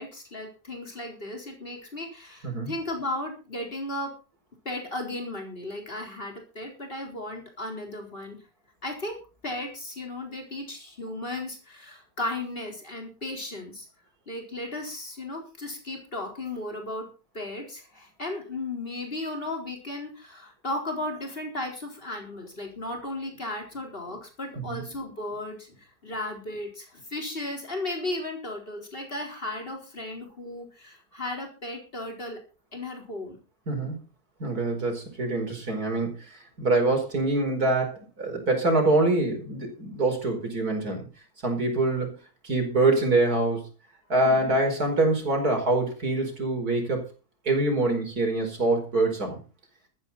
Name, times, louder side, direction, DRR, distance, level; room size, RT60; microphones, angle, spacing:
voice 1, 0.0-4.1 4.6-8.4 8.8-13.9 14.3-17.1 17.3-32.4 32.7-33.4 44.2-44.6, left 2 dB, 35° left, 2 dB, 4.5 m, -35 dB
voice 2, 34.4-36.2 36.6-41.1 41.4-42.2 42.4-43.6 44.1-47.1 47.4-49.4, right 2 dB, 75° right, 4 dB, 5.2 m, -25 dB
14.0 x 13.5 x 4.2 m, 0.33 s
omnidirectional pair, 1.6 m